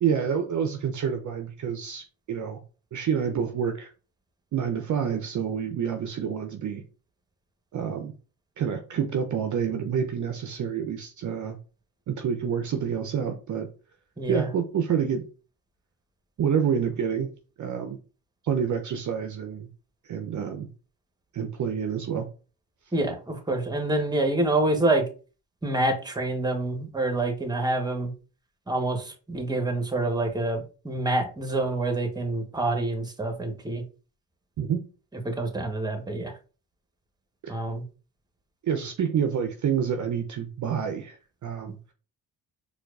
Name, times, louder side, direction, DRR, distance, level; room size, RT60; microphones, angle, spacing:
voice 1, 0.0-2.6 2.9-3.9 4.5-6.8 7.7-8.1 8.6-11.6 12.1-13.7 14.3-15.3 16.4-17.3 17.6-18.0 18.4-19.7 20.0-20.7 21.3-22.3 34.6-34.9 37.4-37.6 38.6-41.8, right 7 dB, 45° right, 6 dB, 0.5 m, -28 dB
voice 2, 14.2-14.5 22.9-25.0 25.6-28.1 28.7-33.8 35.2-36.3 37.5-37.8, right 2 dB, 10° right, 5 dB, 0.9 m, -27 dB
4.4 x 2.4 x 2.3 m, 0.36 s
supercardioid pair, 60°, 43 cm